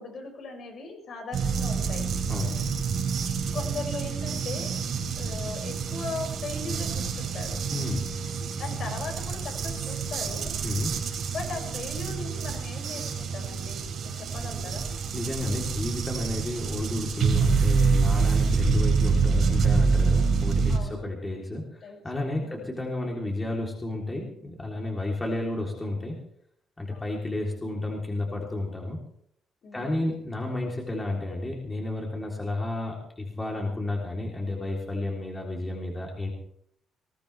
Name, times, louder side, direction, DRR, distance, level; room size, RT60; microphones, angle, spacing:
voice 1, 0.0-2.1 3.5-4.7 5.2-7.6 8.6-10.5 11.3-14.9 20.7-21.0 21.8-22.0 22.3-22.7 26.9-27.1 29.6-30.1, left 3 dB, 50° left, 2 dB, 6.3 m, -38 dB
sound 1, 1.3-20.8, right 5 dB, 60° right, 4.4 m, -27 dB
voice 2, 2.3-2.7 7.7-8.1 8.7-8.8 10.6-11.0 15.1-26.2 26.8-29.0 29.7-36.3, left 2 dB, 15° left, -1 dB, 3.4 m, -31 dB
21.0 x 17.5 x 3.4 m, 0.69 s
cardioid pair, 105°, 0 cm